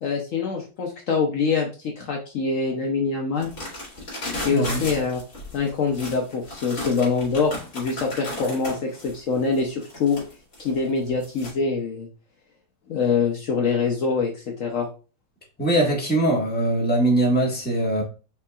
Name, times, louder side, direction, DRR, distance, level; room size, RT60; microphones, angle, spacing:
voice 1, 0.0-3.5 4.4-5.2 5.5-10.2 10.6-12.1 12.9-14.9, left 5 dB, 85° left, 1 dB, 0.7 m, -24 dB
sound 1, 3.4-11.5, left 1 dB, 40° left, 2.8 m, -35 dB
voice 2, 4.5-4.8 15.6-18.0, right 1 dB, 5° left, -2 dB, 1.0 m, -21 dB
5.8 x 3.5 x 2.3 m, 0.34 s
omnidirectional pair, 2.3 m